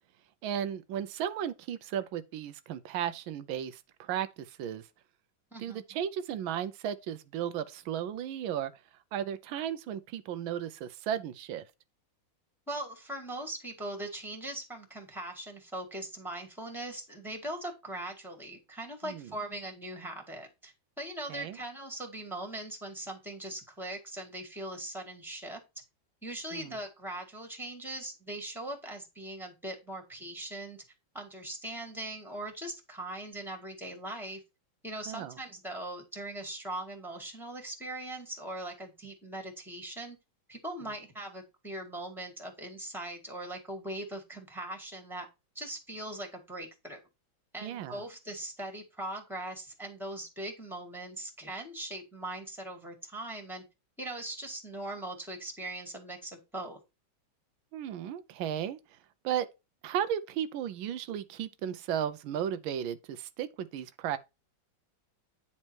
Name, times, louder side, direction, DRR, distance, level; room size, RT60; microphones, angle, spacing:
voice 1, 0.4-4.9 5.6-8.7 9.1-11.6 19.0-19.3 21.3-21.6 26.5-26.8 35.1-35.4 47.6-48.0 57.7-58.8 59.2-59.5 59.8-64.2, right 9 dB, 85° right, 1.4 m, -35 dB
voice 2, 5.5-5.8 12.7-25.6 26.2-30.8 31.1-34.4 34.8-40.2 40.5-45.3 45.6-47.0 47.5-53.6 54.0-56.8, right 1 dB, ahead, 2.0 m, -40 dB
9.7 x 4.3 x 4.5 m
omnidirectional pair, 2.1 m